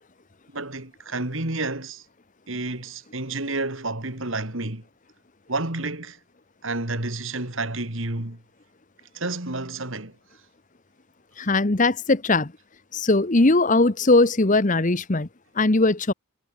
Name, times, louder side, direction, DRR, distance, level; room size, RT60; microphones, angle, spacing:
voice 1, 0.5-2.0 2.5-4.8 5.5-6.2 6.6-8.4 9.1-10.1, right 2 dB, 60° right, 3.0 m, -30 dB
voice 2, 11.4-12.5 12.9-15.3 15.6-16.1, left 2 dB, 35° left, 1.0 m, -20 dB
head